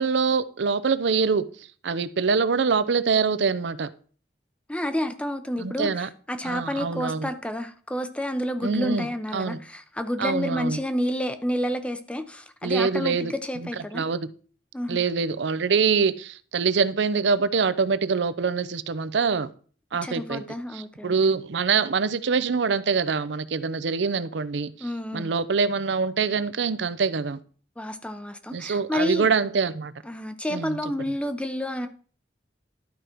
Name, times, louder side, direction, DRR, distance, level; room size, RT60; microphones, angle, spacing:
voice 1, 0.0-1.4 1.8-3.9 5.6-6.1 6.4-7.3 8.6-9.1 9.3-9.6 10.2-10.8 12.6-14.3 14.9-19.5 19.9-20.4 20.7-24.9 25.1-27.4 28.5-29.9 30.5-30.8, right 5 dB, 80° right, 0.6 m, -24 dB
voice 2, 4.7-14.0 14.7-15.0 20.0-21.2 24.8-25.3 27.8-29.3 30.0-31.9, left 1 dB, 5° left, 0.6 m, -30 dB
12.0 x 5.0 x 4.5 m
head